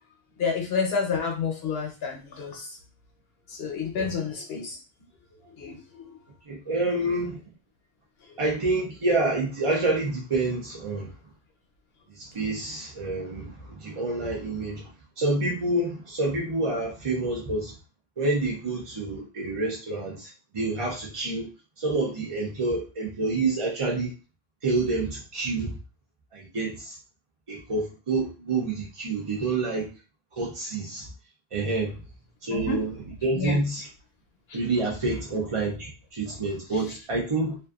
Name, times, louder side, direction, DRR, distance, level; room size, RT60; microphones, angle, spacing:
voice 1, 0.4-2.7 3.5-4.8 5.4-6.2 32.5-32.8 33.3-33.6 34.5-34.6, left 5 dB, 65° left, 1 dB, 0.9 m, -29 dB
voice 2, 6.5-7.4 8.4-11.1 12.2-14.9 15.2-17.7 18.2-21.5 21.8-24.1 24.6-25.7 26.3-27.0 27.5-29.9 30.3-31.1 31.5-31.9 32.4-32.9 33.2-33.8 34.5-37.6, right 2 dB, 40° right, -3 dB, 0.5 m, -28 dB
2.5 x 2.3 x 2.3 m, 0.31 s
omnidirectional pair, 1.1 m